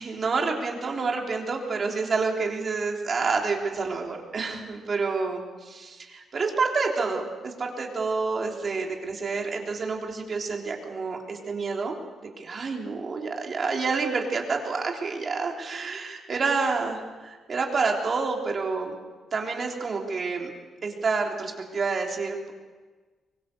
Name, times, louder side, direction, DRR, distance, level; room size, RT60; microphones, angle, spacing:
voice 1, 0.0-12.0 12.4-19.0 19.3-20.5 20.8-22.5, right 4 dB, 35° right, 1 dB, 3.4 m, -28 dB
24.5 x 23.5 x 6.8 m, 1.3 s
wide cardioid pair, 170°, 0 cm